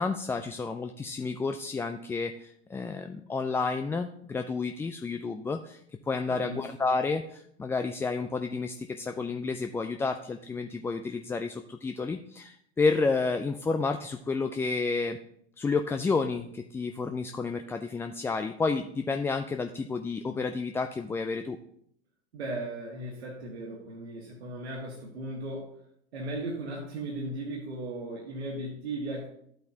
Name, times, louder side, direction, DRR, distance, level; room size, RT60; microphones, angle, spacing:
voice 1, 0.0-5.8 6.1-15.2 15.6-21.6, left 4 dB, 10° left, 7 dB, 0.3 m, -30 dB
voice 2, 6.3-6.7 22.3-25.8 26.1-29.3, right 1 dB, 70° right, -2 dB, 2.1 m, -37 dB
12.0 x 8.3 x 2.9 m, 0.69 s
figure-of-eight pair, 85°, 33 cm